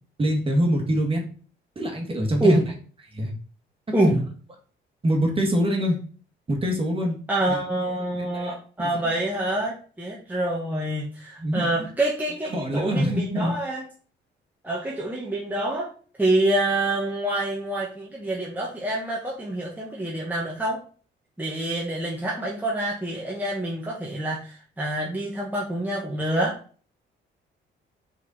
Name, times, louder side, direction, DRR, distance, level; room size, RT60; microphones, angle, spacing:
voice 1, 0.2-1.2 1.8-2.7 3.1-3.3 4.1-4.2 5.0-6.0 6.5-7.2 7.5-7.6 8.1-8.6 8.9-9.0 11.4-11.9 12.5-13.6, equal, 25° right, 1 dB, 2.1 m, -24 dB
voice 2, 7.3-13.8 14.6-15.9 16.2-20.8 21.4-26.5, right 1 dB, 10° right, -4 dB, 1.5 m, -26 dB
4.7 x 4.6 x 4.3 m, 0.42 s
cardioid pair, 90°, 20 cm